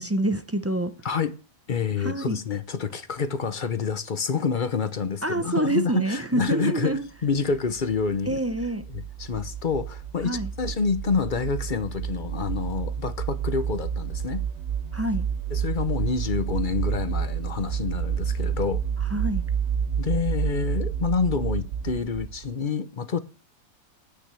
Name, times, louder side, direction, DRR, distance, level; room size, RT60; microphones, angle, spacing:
voice 1, 0.0-0.9 2.0-2.4 5.2-7.0 8.3-8.8 10.2-10.5 14.9-15.3 19.1-19.4, right 2 dB, 20° right, 0.4 m, -26 dB
voice 2, 1.7-8.4 8.9-14.4 15.5-18.8 20.0-23.2, left 5 dB, 40° left, 0.8 m, -28 dB
sound 1, 7.3-22.5, right 8 dB, 55° right, 0.9 m, -30 dB
9.3 x 6.0 x 8.2 m
omnidirectional pair, 1.5 m